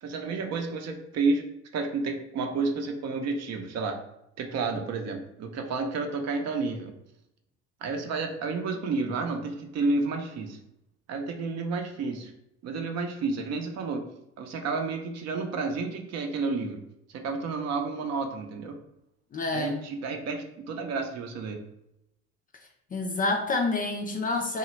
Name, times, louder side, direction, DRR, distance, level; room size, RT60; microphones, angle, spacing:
voice 1, 0.0-1.4 1.7-4.0 4.4-6.9 7.8-10.6 11.1-12.3 12.6-14.0 14.4-16.8 17.1-18.7 19.5-21.6, right 3 dB, 45° right, 4 dB, 0.6 m, -30 dB
voice 2, 19.3-19.8 22.9-24.6, left 3 dB, 25° left, 3 dB, 0.4 m, -28 dB
2.9 x 2.3 x 3.1 m, 0.83 s
hypercardioid pair, 80°, 36 cm